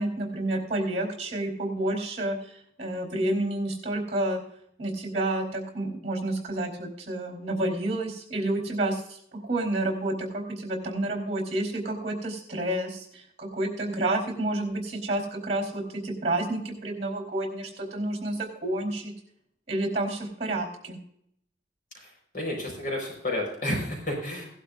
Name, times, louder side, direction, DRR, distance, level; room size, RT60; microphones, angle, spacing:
voice 1, 0.0-2.4 2.8-4.4 4.8-9.0 9.3-19.1 19.7-21.0, right 1 dB, 40° right, 3 dB, 4.0 m, -29 dB
voice 2, 22.3-24.5, left 1 dB, 50° left, 0 dB, 4.7 m, -30 dB
17.0 x 11.5 x 2.6 m, 0.69 s
head